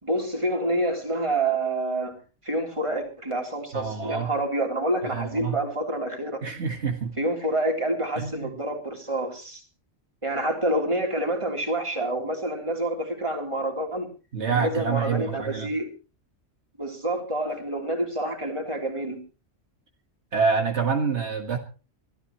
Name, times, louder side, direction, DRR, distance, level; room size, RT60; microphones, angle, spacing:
voice 1, 0.0-2.2 2.4-6.5 7.2-9.6 10.2-14.1 14.5-15.9 16.8-19.2, right 1 dB, 25° right, 3.6 m, -27 dB
voice 2, 3.7-4.3 5.1-5.6 6.4-7.2 8.2-8.5 14.3-15.7 20.3-21.6, right 5 dB, 70° right, 2.0 m, -27 dB
24.0 x 14.0 x 3.1 m
omnidirectional pair, 1.2 m